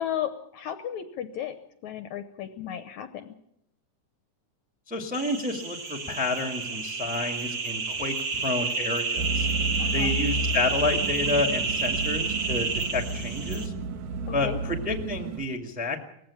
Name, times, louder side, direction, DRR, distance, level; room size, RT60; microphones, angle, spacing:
voice 1, 0.0-1.6 1.8-3.3 9.8-10.2 14.2-14.6, left 10 dB, 70° left, 9 dB, 1.9 m, -34 dB
voice 2, 4.9-9.5 9.9-13.7 14.3-16.1, left 2 dB, 5° right, 5 dB, 1.2 m, -30 dB
sound 1, 5.1-13.7, right 4 dB, 85° right, 0.8 m, -30 dB
sound 2, 9.2-15.4, right 3 dB, 65° right, 2.8 m, -32 dB
19.5 x 15.5 x 8.5 m, 0.78 s
omnidirectional pair, 4.1 m